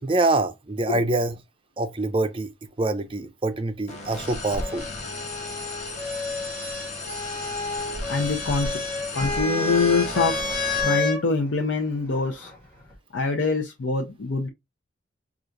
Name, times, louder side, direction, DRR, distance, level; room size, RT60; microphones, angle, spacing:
voice 1, 0.0-1.4 1.8-2.5 2.8-4.8, right 2 dB, 30° right, 0.5 m, -25 dB
sound 1, 3.9-11.0, left 2 dB, 40° left, 0.9 m, -34 dB
sound 2, 4.6-11.2 12.3-12.9, left 3 dB, 10° left, 1.6 m, -30 dB
voice 2, 8.1-8.8 9.1-10.6 10.8-12.5 13.1-14.5, left 4 dB, 90° left, 0.6 m, -25 dB
4.4 x 2.4 x 2.5 m
head